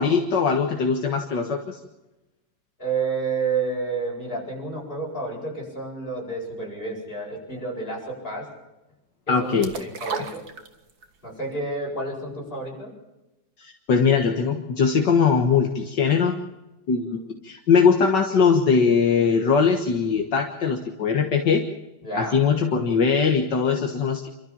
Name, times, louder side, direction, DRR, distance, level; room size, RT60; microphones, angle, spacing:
voice 1, 0.0-1.8 9.3-9.7 13.6-16.4 16.9-21.6 22.2-24.3, left 5 dB, 70° left, 3 dB, 2.1 m, -21 dB
voice 2, 2.8-8.4 9.4-10.4 11.2-12.9 22.0-22.5, right 4 dB, 30° left, -2 dB, 8.4 m, -30 dB
sound 1, 9.6-11.2 11.5-11.6, right 5 dB, 55° right, 2.2 m, -33 dB
28.0 x 13.0 x 7.4 m, 1.0 s
omnidirectional pair, 2.0 m